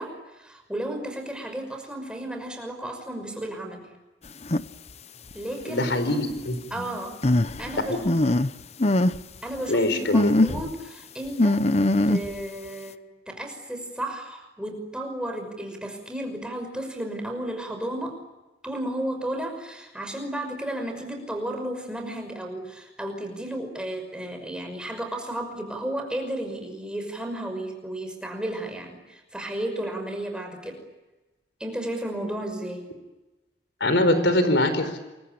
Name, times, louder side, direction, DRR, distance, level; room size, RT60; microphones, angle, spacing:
voice 1, 0.0-3.9 5.3-5.9 6.7-7.2 7.6-8.2 9.4-11.7 12.1-18.2 18.6-30.8 31.6-32.9, right 1 dB, 5° right, 3 dB, 5.8 m, -33 dB
sound 1, 4.4-4.6 5.3-5.4 7.2-8.5 8.8-9.2 9.6-9.7 10.1-10.7 11.4-12.4, left 1 dB, 35° left, 0.9 m, -21 dB
voice 2, 5.7-6.8 9.7-10.3 33.8-35.0, left 1 dB, 70° left, 10 dB, 4.5 m, -23 dB
28.5 x 24.0 x 8.7 m, 1.1 s
head